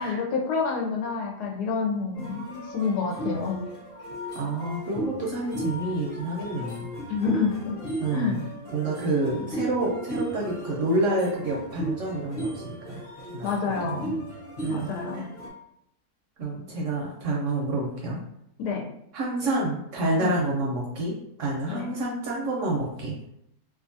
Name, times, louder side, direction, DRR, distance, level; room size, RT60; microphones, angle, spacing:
voice 1, 0.0-3.6 7.1-7.8 8.1-8.4 13.4-14.1 14.7-15.2 18.6-18.9 20.2-20.4 21.7-21.9, left 5 dB, 80° left, 0 dB, 1.2 m, -28 dB
sound 1, 2.2-15.5, right 1 dB, 45° left, 0.8 m, -36 dB
voice 2, 4.3-6.9 8.0-8.4 8.7-13.0 13.3-14.1 14.6-15.2 16.4-18.2 19.1-23.2, right 2 dB, 65° right, -2 dB, 0.8 m, -28 dB
2.7 x 2.4 x 2.6 m, 0.76 s
omnidirectional pair, 1.7 m